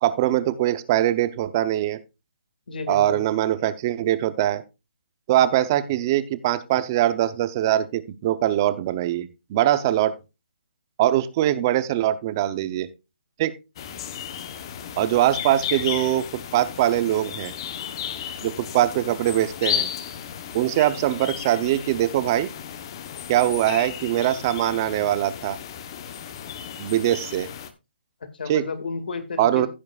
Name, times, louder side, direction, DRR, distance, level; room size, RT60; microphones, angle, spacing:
voice 1, 0.0-2.0 2.9-4.6 5.3-10.1 11.0-12.9 13.4-13.5 15.0-16.3 16.5-17.5 18.4-19.9 20.5-22.5 23.3-25.6 26.8-27.5 28.5-28.6 29.4-29.7, right 13 dB, 20° right, 15 dB, 0.6 m, -22 dB
voice 2, 2.7-3.3 28.2-29.7, left 4 dB, 60° left, 9 dB, 2.0 m, -32 dB
sound 1, 13.8-27.7, left 9 dB, 25° left, 0.9 m, -34 dB
15.5 x 7.2 x 2.4 m, 0.26 s
hypercardioid pair, 175°, 6 cm